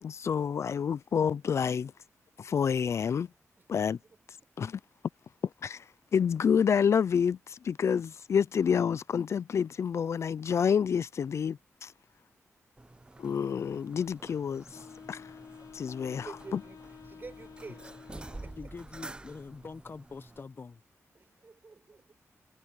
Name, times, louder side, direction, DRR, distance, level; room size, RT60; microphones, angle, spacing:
voice 1, 0.0-1.9 2.4-3.3 3.7-4.0 4.3-4.8 5.6-11.9 13.2-14.8 15.1-15.3 15.7-16.6, left 7 dB, 60° left, 0.3 m, -28 dB
sound 1, 12.8-20.4, right 2 dB, 15° right, 0.6 m, -49 dB
Wind instrument woodwind instrument, 14.7-18.8, left 7 dB, 75° left, 0.9 m, -51 dB
voice 2, 16.0-16.8 17.1-17.9 18.1-18.5 21.2-22.1, right 4 dB, 40° right, 5.9 m, -48 dB
voice 3, 18.2-20.8, left 4 dB, 45° left, 1.0 m, -45 dB
wide cardioid pair, 100°, 5 cm